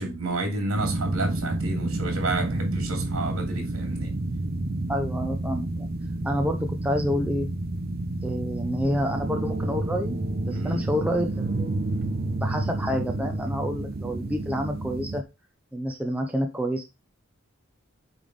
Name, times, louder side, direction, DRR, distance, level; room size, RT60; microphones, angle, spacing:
voice 1, 0.0-4.1 10.5-10.8, right 2 dB, 80° right, 2.7 m, -30 dB
sound 1, 0.7-15.2, right 2 dB, 45° right, 0.6 m, -29 dB
voice 2, 4.9-5.9 6.2-7.5 8.2-10.2 10.4-11.9 12.4-15.2 15.7-16.9, equal, 5° right, 0.8 m, -28 dB
8.9 x 3.5 x 5.3 m
head